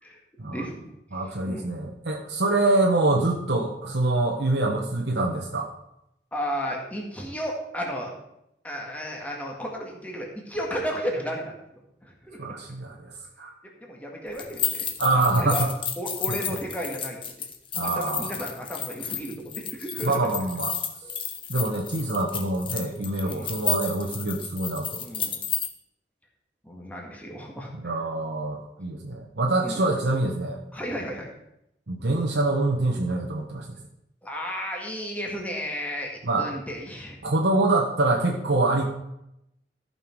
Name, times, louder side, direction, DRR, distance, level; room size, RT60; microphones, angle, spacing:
voice 1, 0.5-0.9 1.4-1.7 6.3-8.1 8.6-11.5 12.0-12.4 13.8-15.7 16.0-17.3 17.8-20.3 21.0-21.1 23.2-23.5 24.4-24.5 25.0-25.4 26.6-27.7 29.6-29.8 30.7-31.3 34.2-36.1 36.4-37.2, equal, 10° left, -1 dB, 1.9 m, -33 dB
voice 2, 1.1-5.7 12.4-13.1 13.4-13.5 15.0-15.7 16.3-16.5 17.7-18.3 20.0-20.7 21.5-25.0 27.7-30.6 31.9-33.7 36.2-36.5 37.2-38.8, right 2 dB, 70° right, 0 dB, 1.1 m, -25 dB
sound 1, 14.3-25.7, left 7 dB, 30° left, 1.0 m, -32 dB
14.0 x 5.8 x 4.6 m, 0.83 s
head